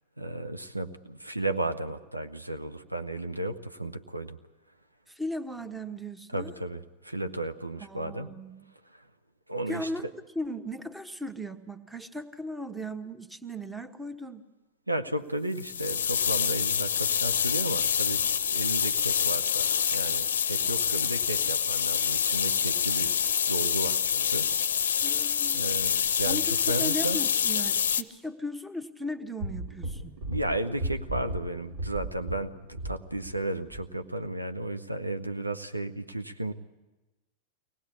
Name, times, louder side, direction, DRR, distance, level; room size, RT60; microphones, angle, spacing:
voice 1, 0.2-4.4 6.3-8.3 8.9-9.0 9.5-9.9 14.9-23.1 23.5-25.1 25.5-27.2 30.3-36.5, right 1 dB, 85° right, 7 dB, 0.9 m, -34 dB
voice 2, 5.1-6.5 7.8-8.7 9.7-10.1 10.3-14.4 25.0-30.2, equal, 5° right, 10 dB, 1.2 m, -37 dB
sound 1, 15.6-28.0, left 8 dB, 65° left, 0.7 m, -26 dB
sound 2, 29.4-33.4 33.7-33.9, right 1 dB, 50° right, 2.3 m, -36 dB
23.5 x 18.5 x 8.5 m, 1.1 s
figure-of-eight pair, 90°, 0 cm